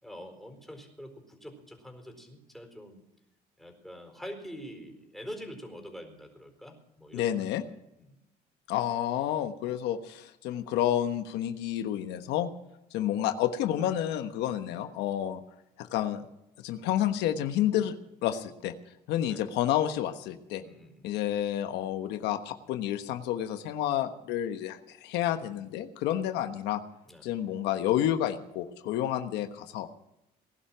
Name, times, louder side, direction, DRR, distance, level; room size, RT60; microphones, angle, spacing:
voice 1, 0.0-3.0 3.6-7.4 8.0-8.2 19.3-19.4 20.5-21.1 27.1-27.3, equal, ahead, 2 dB, 4.5 m, -45 dB
voice 2, 7.1-7.6 8.7-12.5 12.9-15.4 15.8-16.2 16.6-18.0 18.2-18.7 19.1-20.6 21.0-26.8 27.2-29.9, left 11 dB, 90° left, 8 dB, 1.2 m, -30 dB
19.5 x 11.5 x 6.1 m, 0.85 s
cardioid pair, 110°, 17 cm